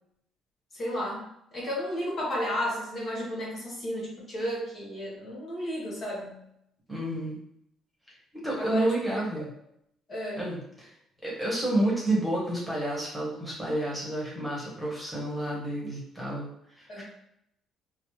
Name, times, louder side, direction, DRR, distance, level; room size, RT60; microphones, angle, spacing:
voice 1, 0.7-1.2 1.5-6.4 8.6-9.2 10.1-10.5 16.9-17.0, equal, 45° left, -4 dB, 1.2 m, -33 dB
voice 2, 6.9-7.4 8.3-9.5 10.4-10.9 11.2-17.0, right 1 dB, 10° right, -5 dB, 1.2 m, -30 dB
3.2 x 2.0 x 3.0 m, 0.75 s
cardioid pair, 95°, 0 cm